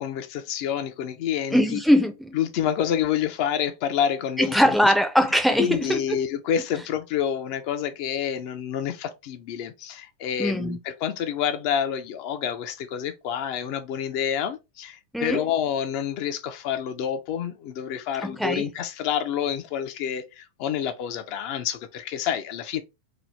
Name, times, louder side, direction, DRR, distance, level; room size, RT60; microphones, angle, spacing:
voice 1, 0.0-1.8 2.4-4.9 5.6-22.8, left 9 dB, 55° left, 0.5 m, -28 dB
voice 2, 1.5-2.4 4.4-6.2 10.4-10.8 15.1-15.4 18.2-18.7, equal, ahead, 0.5 m, -21 dB
2.8 x 2.0 x 3.1 m
hypercardioid pair, 115°, 0 cm